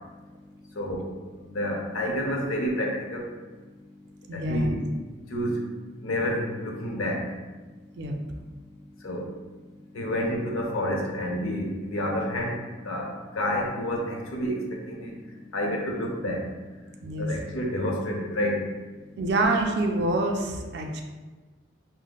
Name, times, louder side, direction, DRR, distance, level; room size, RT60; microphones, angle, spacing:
voice 1, 0.8-1.1 1.5-3.3 4.3-4.8 5.3-5.6 6.0-7.2 9.0-9.2 9.9-12.5 12.8-14.6 14.9-15.1 15.5-16.4 17.2-18.6, equal, 90° left, 0 dB, 0.7 m, -29 dB
voice 2, 4.3-4.8 8.0-8.1 17.0-17.3 19.2-21.0, right 2 dB, 55° right, 2 dB, 0.4 m, -26 dB
5.2 x 2.0 x 2.2 m, 1.3 s
head